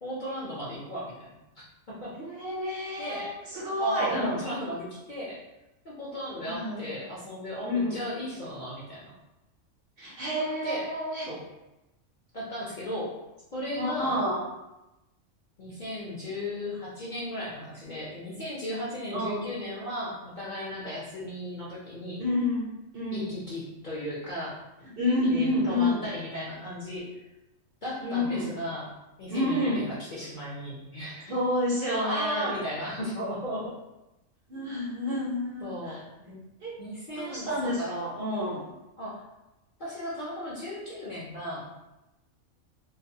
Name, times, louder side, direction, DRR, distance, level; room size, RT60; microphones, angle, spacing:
voice 1, 0.0-1.4 1.9-2.1 3.0-3.3 3.8-5.4 5.8-9.2 10.3-10.9 11.3-11.4 12.3-13.1 13.5-14.2 15.6-22.2 23.1-24.6 25.2-27.1 27.8-31.4 32.0-33.7 35.6-36.0 36.3-36.4 36.8-37.9 39.0-39.2 39.8-41.8, equal, 50° left, -8 dB, 0.6 m, -35 dB
voice 2, 2.2-4.4 6.4-6.8 7.6-8.0 10.0-11.3 13.8-14.4 19.1-19.4 22.2-23.3 24.9-26.1 28.0-28.5 29.3-29.9 31.3-32.6 34.5-36.0 36.6-36.7 37.2-38.7, left 1 dB, 60° right, -5 dB, 0.7 m, -29 dB
2.3 x 2.1 x 2.6 m, 0.96 s
omnidirectional pair, 1.3 m